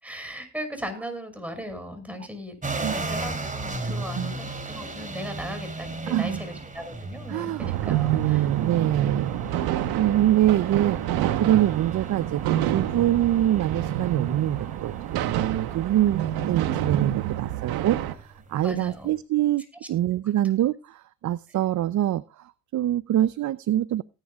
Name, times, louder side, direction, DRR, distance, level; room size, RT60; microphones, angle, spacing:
voice 1, 0.0-8.9 18.6-19.1, equal, 5° right, 6 dB, 6.0 m, -38 dB
sound 1, 2.6-19.1, right 2 dB, 20° right, 3.3 m, -37 dB
voice 2, 3.9-4.3 6.1-6.4 7.3-9.3 9.7-11.0 11.4-12.4 12.7-19.6 19.9-24.0, right 12 dB, 55° right, 17 dB, 0.6 m, -25 dB
sound 2, 7.6-18.1, right 12 dB, 90° right, 1.2 m, -28 dB
19.0 x 10.5 x 2.4 m, 0.32 s
supercardioid pair, 75°, 35 cm